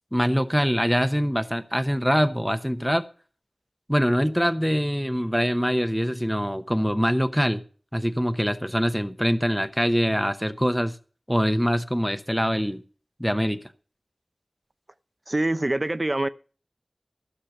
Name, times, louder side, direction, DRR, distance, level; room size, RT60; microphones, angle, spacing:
voice 1, 0.1-3.0 3.9-7.6 7.9-11.0 11.3-12.8 13.2-13.6, equal, ahead, 0.8 m, -24 dB
voice 2, 15.3-16.3, right 1 dB, 45° right, 0.7 m, -24 dB
14.5 x 6.3 x 6.7 m
wide cardioid pair, 50°, 0 cm